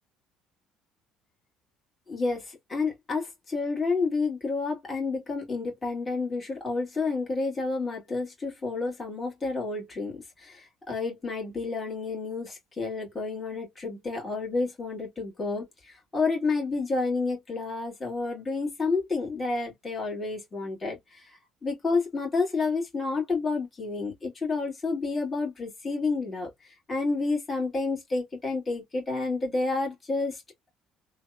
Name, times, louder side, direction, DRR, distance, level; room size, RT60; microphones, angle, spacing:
voice 1, 2.1-30.4, left 3 dB, 25° left, 1.8 m, -30 dB
3.2 x 2.2 x 2.4 m
supercardioid pair, 70°, 0 cm